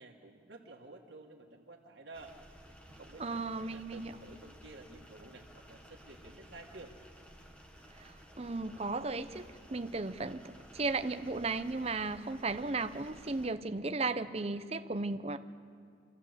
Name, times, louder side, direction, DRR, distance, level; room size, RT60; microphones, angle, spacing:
voice 1, 0.0-2.4 3.0-6.9, right 2 dB, 70° right, -1 dB, 1.9 m, -52 dB
sound 1, 2.1-13.5, equal, 5° left, 1.4 m, -55 dB
voice 2, 3.2-4.1 7.9-15.4, right 3 dB, 35° right, 9 dB, 0.7 m, -35 dB
25.5 x 15.0 x 8.2 m, 2.4 s
head